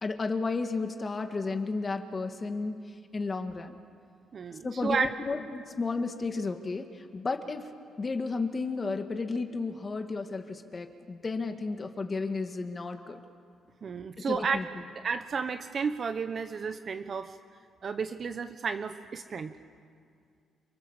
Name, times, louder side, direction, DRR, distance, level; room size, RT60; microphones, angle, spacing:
voice 1, 0.0-2.8 3.1-3.7 4.6-7.7 8.0-13.2 14.3-14.7, left 3 dB, 30° left, 6 dB, 1.9 m, -33 dB
voice 2, 4.3-5.1 13.8-14.6 15.0-17.4 17.8-19.5, right 5 dB, 50° right, 8 dB, 1.1 m, -32 dB
29.5 x 26.0 x 7.4 m, 2.2 s
cardioid pair, 90°, 0 cm